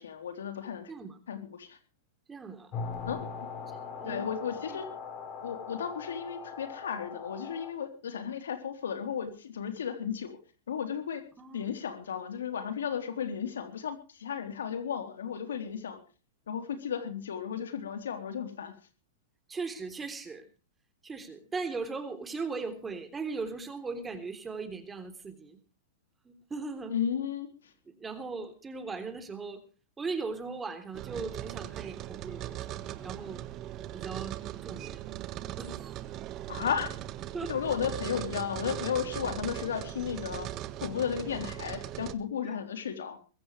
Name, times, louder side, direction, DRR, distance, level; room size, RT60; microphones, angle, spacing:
voice 1, 0.0-0.9 1.3-1.8 3.1-3.3 4.0-4.9 5.4-10.4 10.7-11.2 11.5-16.0 16.5-18.7 26.9-27.7 36.5-36.9 37.5-40.5 40.8-43.3, left 8 dB, 90° left, 8 dB, 3.6 m, -34 dB
voice 2, 0.9-1.2 2.3-2.7 4.0-4.2 11.4-11.6 19.5-20.5 21.0-25.6 26.2-26.9 27.9-29.6 30.0-33.4 33.9-35.0 35.6-36.0 37.3-37.5 42.4-42.5, right 4 dB, 15° right, 8 dB, 3.3 m, -38 dB
sound 1, 2.7-7.7, left 5 dB, 35° left, 5.6 m, -40 dB
sound 2, 30.9-42.1, right 13 dB, 35° right, 1.4 m, -39 dB
22.5 x 15.5 x 3.3 m, 0.37 s
hypercardioid pair, 130°, 0 cm